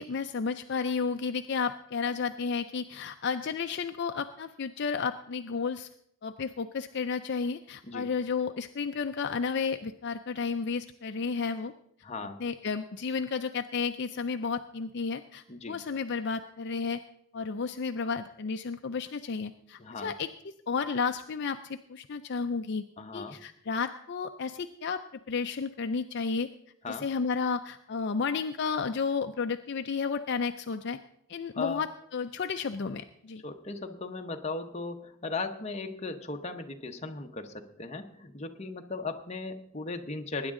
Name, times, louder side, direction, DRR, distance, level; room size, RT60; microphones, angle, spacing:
voice 1, 0.0-5.9 6.2-11.7 12.4-17.0 17.3-22.8 23.1-25.0 25.3-26.5 26.9-31.0 31.3-33.4, left 5 dB, 50° left, 7 dB, 0.4 m, -32 dB
voice 2, 12.0-12.4 15.5-15.8 19.8-20.1 23.0-23.4 26.8-27.0 31.6-31.8 33.4-40.5, left 3 dB, 30° left, 4 dB, 0.8 m, -37 dB
19.5 x 9.7 x 3.7 m, 0.73 s
head